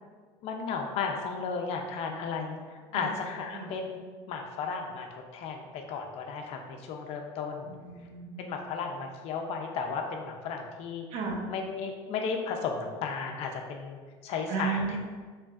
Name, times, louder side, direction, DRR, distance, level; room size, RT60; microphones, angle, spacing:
voice 1, 0.4-7.7 8.4-11.0 11.5-14.8, left 5 dB, 55° left, 3 dB, 0.6 m, -34 dB
voice 2, 7.6-8.4 11.1-11.5 14.5-15.0, right 5 dB, 60° right, 0 dB, 1.0 m, -34 dB
6.7 x 3.1 x 2.4 m, 1.5 s
supercardioid pair, 125°, 12 cm